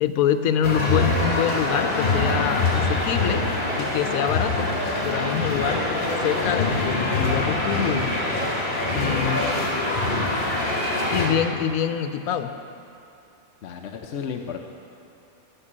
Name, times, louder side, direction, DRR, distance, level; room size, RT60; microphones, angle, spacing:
voice 1, 0.0-3.4 3.7-4.7 5.0-5.8 6.2-8.2 8.9-9.4 11.1-12.5, left 9 dB, 80° left, 9 dB, 1.1 m, -25 dB
sound 1, 0.6-11.3, left 2 dB, 35° left, 2.0 m, -24 dB
voice 2, 13.6-14.6, left 7 dB, 60° left, 3 dB, 0.9 m, -33 dB
13.5 x 5.3 x 8.6 m, 2.8 s
omnidirectional pair, 1.5 m